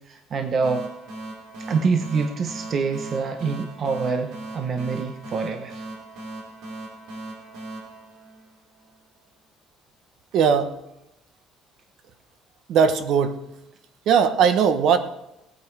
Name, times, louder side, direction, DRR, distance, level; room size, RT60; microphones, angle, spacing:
voice 1, 0.1-0.8 1.7-5.8, right 5 dB, 35° right, 6 dB, 0.9 m, -26 dB
sound 1, 0.6-9.0, right 2 dB, 75° right, 3.4 m, -39 dB
voice 2, 10.3-10.7 12.7-13.4 14.1-15.0, right 7 dB, 55° right, 10 dB, 1.2 m, -19 dB
18.0 x 8.9 x 4.7 m, 0.87 s
cardioid pair, 160°, 0 cm